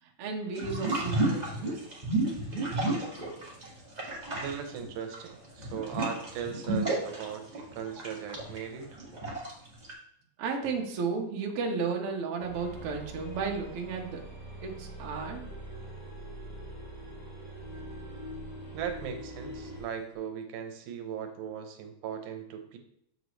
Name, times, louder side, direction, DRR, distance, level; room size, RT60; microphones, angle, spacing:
voice 1, 0.0-1.9 10.4-14.2 14.6-15.4, right 5 dB, 60° right, 1 dB, 1.8 m, -33 dB
sound 1, 0.5-3.7 3.9-9.9, right 2 dB, 20° right, 1.1 m, -32 dB
voice 2, 4.4-8.9 18.7-22.8, right 8 dB, 85° right, 6 dB, 2.3 m, -38 dB
sound 2, 12.4-19.9, right 1 dB, 15° left, 1.7 m, -43 dB
7.3 x 6.5 x 3.1 m, 0.74 s
omnidirectional pair, 3.4 m